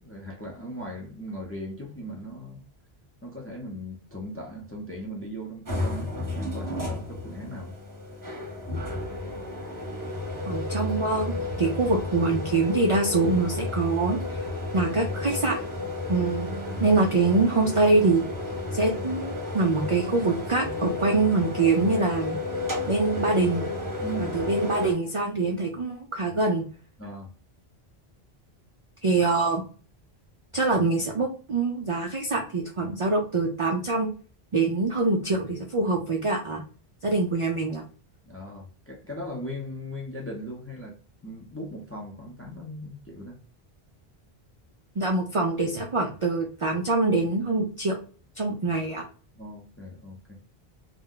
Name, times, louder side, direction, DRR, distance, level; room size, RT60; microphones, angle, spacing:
voice 1, 0.0-2.6 3.2-7.7 24.0-24.4 27.0-27.3 38.2-43.4 49.4-50.4, equal, 20° left, 0.4 m, -38 dB
sound 1, 5.7-24.9, left 2 dB, 20° right, 0.8 m, -32 dB
voice 2, 10.5-11.3 11.6-14.5 14.7-15.6 16.1-16.5 16.8-18.3 18.7-22.4 22.9-23.7 24.2-26.6 29.0-29.6 30.5-34.1 34.5-36.6 37.0-37.8 45.0-48.0 48.4-49.0, right 3 dB, 55° right, 0.3 m, -24 dB
2.4 x 2.1 x 3.7 m
omnidirectional pair, 1.1 m